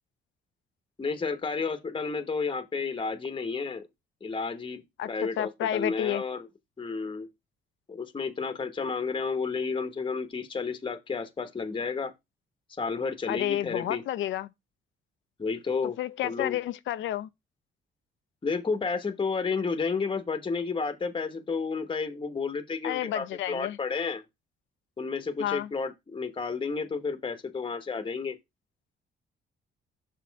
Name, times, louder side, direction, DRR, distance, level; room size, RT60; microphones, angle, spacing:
voice 1, 1.0-3.9 4.2-6.5 6.8-7.3 7.9-12.1 12.8-14.0 15.4-16.0 16.2-16.6 18.4-24.2 25.0-28.4, left 4 dB, 25° left, 1.1 m, -31 dB
voice 2, 5.4-6.2 13.3-14.5 16.0-17.3 22.8-23.8 25.4-25.7, left 12 dB, 75° left, 0.6 m, -30 dB
6.3 x 4.2 x 4.6 m
cardioid pair, 90°, 20 cm